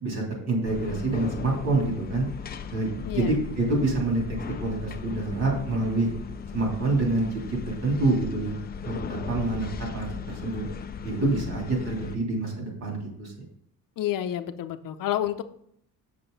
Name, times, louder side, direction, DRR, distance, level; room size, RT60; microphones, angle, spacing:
voice 1, 0.0-2.3 2.7-4.2 4.6-6.1 6.5-7.2 7.5-10.6 11.0-13.4, right 2 dB, 50° right, -2 dB, 3.3 m, -27 dB
sound 1, 0.6-12.2, left 6 dB, 30° left, 0.4 m, -37 dB
voice 2, 3.0-3.4 11.1-11.6 14.0-15.4, left 12 dB, 65° left, 10 dB, 0.7 m, -30 dB
7.8 x 6.7 x 4.0 m, 0.68 s
cardioid pair, 180°, 35 cm